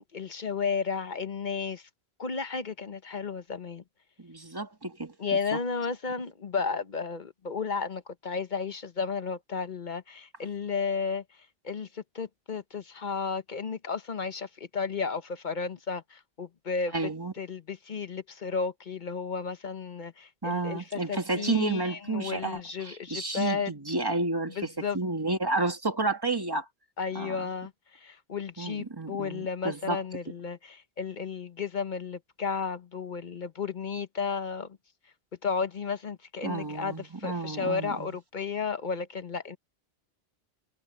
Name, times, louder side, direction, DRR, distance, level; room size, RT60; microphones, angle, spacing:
voice 1, 0.0-1.9 2.2-3.8 5.2-11.2 11.6-16.9 17.4-23.7 24.6-25.0 27.0-34.8 35.4-39.6, left 5 dB, 50° left, 1.0 m, -33 dB
voice 2, 4.2-5.1 5.5-5.6 16.9-17.3 20.4-26.7 27.2-27.5 28.6-30.0 36.4-38.1, right 2 dB, 20° right, 1.8 m, -31 dB
omnidirectional pair, 1.1 m